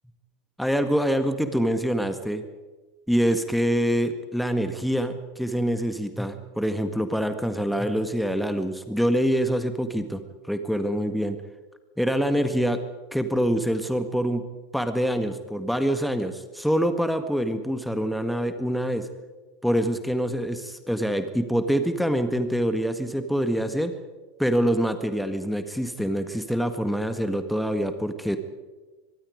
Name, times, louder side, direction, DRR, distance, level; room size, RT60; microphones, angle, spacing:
voice 1, 0.6-2.4 3.1-10.2 10.5-11.4 12.0-12.8 13.1-14.5 14.7-19.1 19.6-23.9 24.4-28.4, equal, ahead, 9 dB, 1.7 m, -25 dB
23.5 x 23.0 x 5.2 m, 1.3 s
figure-of-eight pair, 85°, 0 cm